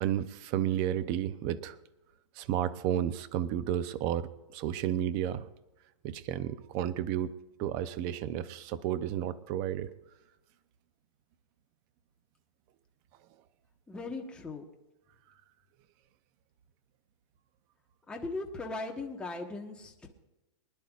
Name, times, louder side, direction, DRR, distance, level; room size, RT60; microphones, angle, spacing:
voice 1, 0.0-1.8 2.4-5.5 6.0-7.3 7.6-9.9, right 11 dB, 25° right, 14 dB, 0.5 m, -32 dB
voice 2, 13.9-14.6 18.1-20.1, left 3 dB, 5° left, 0 dB, 1.2 m, -38 dB
24.0 x 10.5 x 2.4 m, 1.0 s
hypercardioid pair, 165°, 16 cm